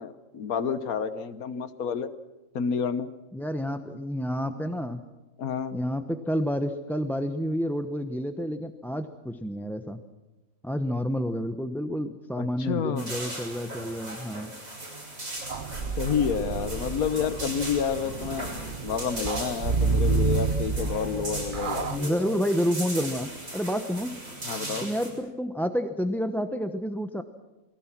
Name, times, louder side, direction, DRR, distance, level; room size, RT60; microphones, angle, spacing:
voice 1, 0.0-2.1 2.5-3.1 5.4-5.8 12.4-13.1 16.0-18.5 18.8-22.4 24.4-24.9, left 7 dB, 85° left, 12 dB, 1.6 m, -29 dB
voice 2, 3.3-5.0 5.7-10.0 10.6-14.5 21.9-24.2 24.8-27.2, equal, ahead, 7 dB, 0.8 m, -29 dB
sound 1, 13.0-25.1, right 2 dB, 65° right, 7.4 m, -38 dB
sound 2, 15.5-22.0, right 4 dB, 40° right, 1.1 m, -29 dB
29.0 x 21.0 x 6.1 m, 1.1 s
omnidirectional pair, 1.5 m